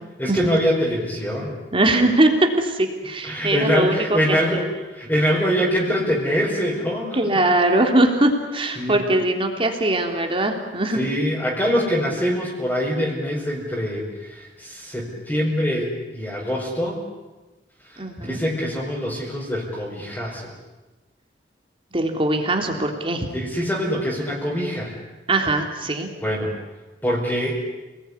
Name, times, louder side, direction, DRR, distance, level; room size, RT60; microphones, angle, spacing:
voice 1, 0.2-1.6 3.2-7.4 8.8-9.0 10.9-17.0 17.9-20.5 23.3-24.9 26.2-26.5 27.0-27.6, equal, 10° left, -5 dB, 5.0 m, -24 dB
voice 2, 1.7-4.4 7.1-11.0 18.0-18.4 21.9-23.3 25.3-26.1, right 1 dB, 30° right, 3 dB, 3.5 m, -21 dB
29.0 x 20.0 x 9.8 m, 1.1 s
head